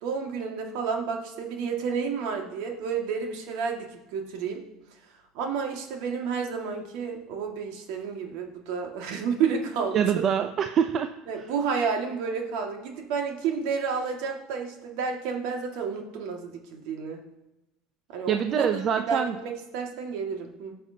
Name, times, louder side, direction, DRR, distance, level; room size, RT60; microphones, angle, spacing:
voice 1, 0.0-3.9 4.1-4.6 5.3-10.0 11.3-17.2 18.1-18.8 19.1-20.7, right 6 dB, 65° right, 2 dB, 1.9 m, -30 dB
voice 2, 9.9-11.1 18.3-19.3, right 8 dB, 45° right, 8 dB, 0.6 m, -25 dB
17.5 x 6.7 x 2.8 m, 0.97 s
hypercardioid pair, 75°, 0 cm